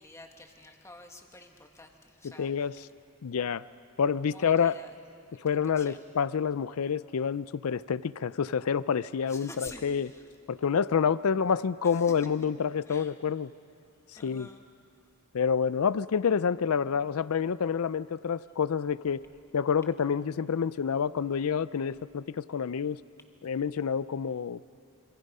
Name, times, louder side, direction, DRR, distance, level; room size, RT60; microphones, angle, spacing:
voice 1, 0.0-2.5 4.3-4.9 5.8-6.0 9.3-9.8 10.1-10.2 12.9-13.1 14.2-14.6, left 2 dB, 15° left, 3 dB, 1.7 m, -48 dB
voice 2, 2.2-2.9 3.2-3.6 4.0-4.8 5.4-10.1 10.5-13.5 14.1-14.5 15.3-19.2 19.5-23.0 23.4-24.6, left 6 dB, 70° left, 17 dB, 0.5 m, -28 dB
27.5 x 26.0 x 5.5 m, 2.6 s
head